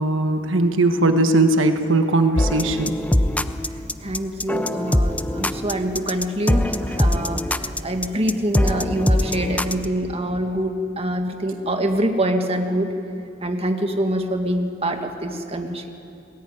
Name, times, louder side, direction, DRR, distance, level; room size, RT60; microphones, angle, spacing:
voice 1, 0.0-3.0 6.8-7.0, right 2 dB, 80° right, 7 dB, 1.4 m, -19 dB
sound 1, 2.4-9.9, left 1 dB, 5° left, 0.5 m, -22 dB
voice 2, 4.0-12.9 13.4-15.9, right 1 dB, 30° right, 4 dB, 1.8 m, -25 dB
19.5 x 19.0 x 9.7 m, 2.7 s
head